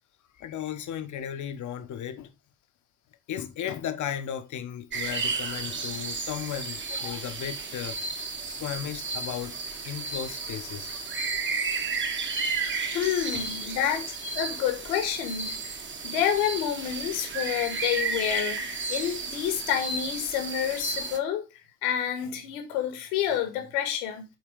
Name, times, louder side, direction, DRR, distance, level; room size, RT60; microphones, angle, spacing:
voice 1, 0.4-2.3 3.3-8.0 8.6-9.6 9.8-11.0 12.6-13.7 14.2-14.4, left 9 dB, 40° left, 1.4 m, -35 dB
sound 1, 4.9-21.2, right 4 dB, 25° right, 1.5 m, -33 dB
voice 2, 12.6-14.1 14.3-15.8 16.0-21.4 21.8-24.3, left 9 dB, 70° left, 2.2 m, -29 dB
7.7 x 4.3 x 5.2 m
hypercardioid pair, 70°, 44 cm